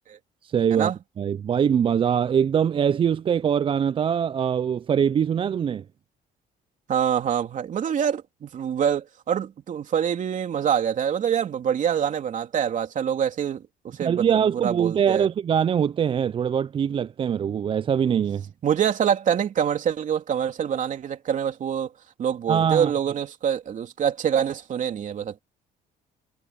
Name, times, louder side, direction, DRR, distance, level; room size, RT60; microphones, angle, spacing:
voice 1, 0.4-0.9 1.2-5.8 14.0-18.4 22.5-22.9, right 8 dB, 30° right, 0.4 m, -23 dB
voice 2, 6.9-15.3 18.6-21.9 22.2-25.4, right 8 dB, 50° right, 3.2 m, -25 dB
cardioid pair, 110°, 17 cm